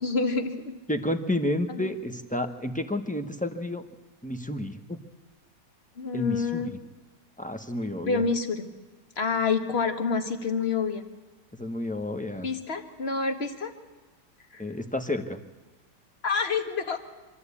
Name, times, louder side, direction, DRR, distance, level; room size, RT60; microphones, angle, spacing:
voice 1, 0.0-0.7 1.7-1.9 6.0-6.7 8.0-8.7 9.2-11.0 12.4-13.7 14.5-14.6 16.2-17.0, left 4 dB, 40° left, 7 dB, 1.7 m, -28 dB
voice 2, 0.9-3.8 4.2-5.0 6.1-6.8 7.4-8.2 11.6-12.5 14.6-15.4, left 1 dB, 5° left, 6 dB, 0.8 m, -30 dB
25.5 x 12.5 x 8.4 m, 1.2 s
omnidirectional pair, 1.9 m